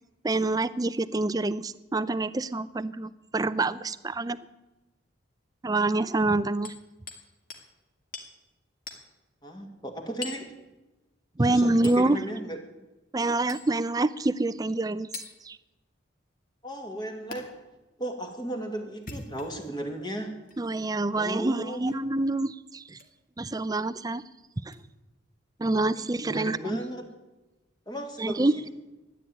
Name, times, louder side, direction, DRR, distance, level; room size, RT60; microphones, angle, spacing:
voice 1, 0.2-4.4 5.6-6.8 11.4-12.2 13.1-15.1 15.4-15.6 20.6-23.0 23.4-24.2 24.6-24.8 25.6-26.8 28.2-28.7, right 2 dB, 20° right, 16 dB, 0.4 m, -26 dB
Hammer, 6.6-7.2 7.5-7.7 8.1-8.3 8.9-9.1 10.2-10.5 11.8-12.0 13.5-13.7 15.1-15.3 17.3-17.4 18.9-19.7 20.4-20.6 21.9-22.1 22.9-23.1 24.7-24.8, left 4 dB, 45° left, 2.1 m, -41 dB
voice 2, 9.4-10.5 11.5-12.6 16.6-17.5 18.0-20.4 21.1-21.8 26.0-27.0 27.9-28.7, right 1 dB, 20° left, 4 dB, 2.0 m, -35 dB
14.0 x 10.0 x 9.0 m, 1.1 s
head